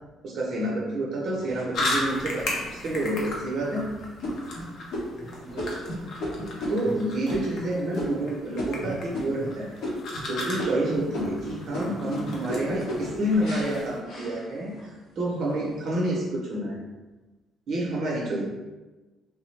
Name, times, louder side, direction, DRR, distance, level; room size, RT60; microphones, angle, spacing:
voice 1, 0.2-3.9 6.7-9.7 10.3-16.8 17.7-18.4, right 1 dB, 55° right, -3 dB, 0.6 m, -28 dB
sound 1, 1.4-2.2 2.8-2.9 3.4-3.7 4.2-9.5 9.8-10.3 10.6-14.9 15.4-15.9, left 1 dB, 85° left, 0.9 m, -34 dB
sound 2, 1.7-14.0, left 2 dB, 55° left, 0.6 m, -36 dB
voice 2, 5.4-6.2 16.5-16.8, right 1 dB, ahead, -6 dB, 1.0 m, -44 dB
3.3 x 2.0 x 3.1 m, 1.2 s
cardioid pair, 140°, 0 cm